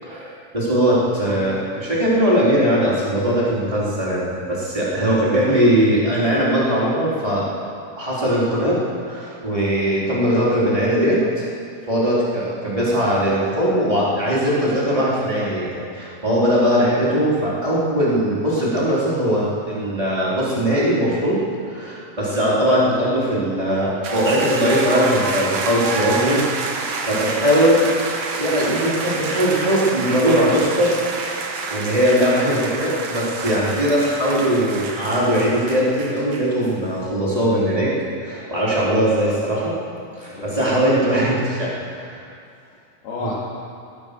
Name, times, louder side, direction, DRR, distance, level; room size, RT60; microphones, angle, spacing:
voice 1, 0.0-7.4 8.0-8.8 9.1-11.5 11.9-21.4 21.7-26.4 26.7-27.8 28.4-30.9 31.3-37.9 38.2-39.7 40.1-41.7 41.9-42.2 43.2-43.3, equal, 10° right, -8 dB, 3.8 m, -20 dB
sound 1, 24.0-36.7, right 4 dB, 60° right, 2.0 m, -28 dB
voice 2, 40.2-41.4 42.7-43.3, left 3 dB, 85° left, -8 dB, 4.1 m, -34 dB
16.5 x 12.0 x 6.9 m, 2.3 s
omnidirectional pair, 4.4 m